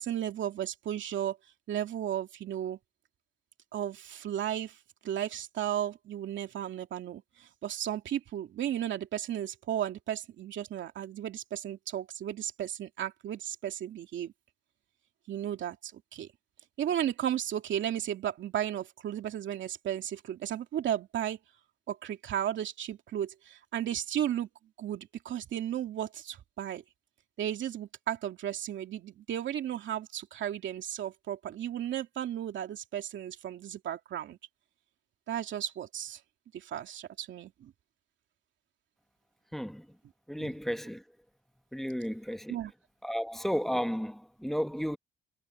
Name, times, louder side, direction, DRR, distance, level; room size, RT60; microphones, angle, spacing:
voice 1, 0.0-1.4 1.7-2.8 3.7-4.8 5.0-14.3 15.3-16.3 16.8-21.4 21.9-24.5 24.8-26.8 27.4-34.4 35.3-36.2 36.5-37.7 40.4-40.5 42.5-42.7, right 10 dB, 70° right, 2.6 m, -34 dB
voice 2, 39.5-39.9 40.3-41.0 41.7-42.6 43.0-45.0, equal, ahead, 1.2 m, -33 dB
cardioid pair, 90°, 20 cm